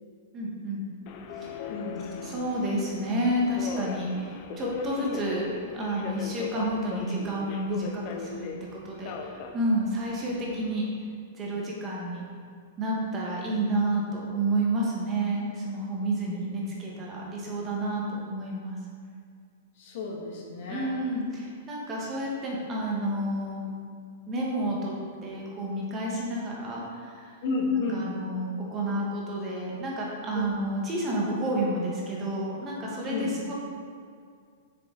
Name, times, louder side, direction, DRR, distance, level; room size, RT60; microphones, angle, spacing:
voice 1, 0.3-0.8 1.4-1.6 2.2-5.4 5.7-10.8 11.3-12.2 12.8-18.8 20.7-23.7 24.3-24.9 25.2-27.3 27.9-33.5, right 1 dB, 20° right, -3 dB, 1.5 m, -30 dB
Subway metro underground, 1.1-10.8, left 6 dB, 35° left, 0.6 m, -39 dB
voice 2, 1.7-2.2 5.0-5.1 19.8-20.9 27.4-28.1 30.3-30.5 33.1-33.3, left 4 dB, 50° left, -2 dB, 1.7 m, -31 dB
6.9 x 6.7 x 3.9 m, 2.2 s
supercardioid pair, 165°, 0 cm